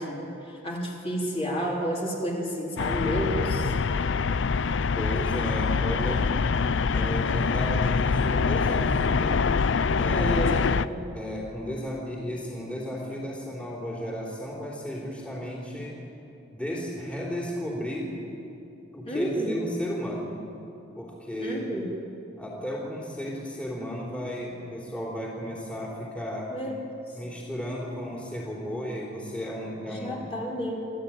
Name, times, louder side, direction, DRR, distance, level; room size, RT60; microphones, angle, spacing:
voice 1, 0.0-3.7 10.1-11.0 19.1-19.6 21.4-21.8 26.5-26.8 29.8-30.9, equal, 30° left, -3 dB, 3.9 m, -31 dB
sound 1, 2.8-10.9, left 5 dB, 70° left, 0.5 m, -25 dB
voice 2, 4.9-6.3 6.9-9.5 10.0-10.9 11.1-16.0 16.5-18.1 18.9-20.3 21.0-21.6 22.4-26.5 27.1-30.3, equal, 5° left, -4 dB, 3.6 m, -34 dB
29.5 x 13.0 x 8.9 m, 2.8 s
head